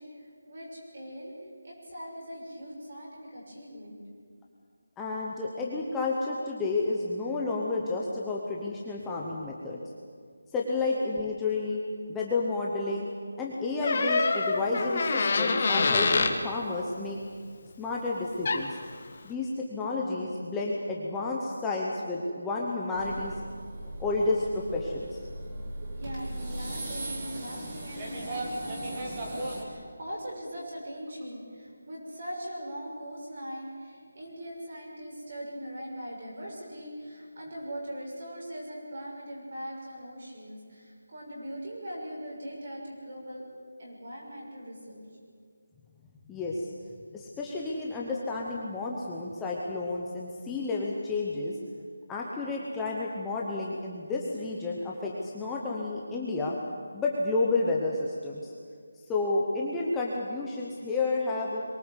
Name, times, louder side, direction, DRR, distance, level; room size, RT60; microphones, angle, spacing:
voice 1, 0.0-1.3 1.6-4.0 25.7-43.4 43.8-45.2, equal, 35° right, -2 dB, 6.4 m, -41 dB
voice 2, 5.0-9.8 10.5-11.8 12.1-13.1 13.4-17.2 17.8-18.8 19.2-23.3 24.0-25.2 46.3-46.7 47.1-51.6 52.1-56.6 56.9-58.5 59.1-61.6, left 3 dB, 5° left, -3 dB, 0.9 m, -31 dB
Door, 13.8-16.4 18.2-18.3 18.4-18.8, left 4 dB, 30° left, 1.4 m, -25 dB
sound 1, 22.9-29.6, right 1 dB, 15° right, 2.3 m, -37 dB
22.5 x 18.5 x 8.2 m, 2.1 s
figure-of-eight pair, 180°, 0 cm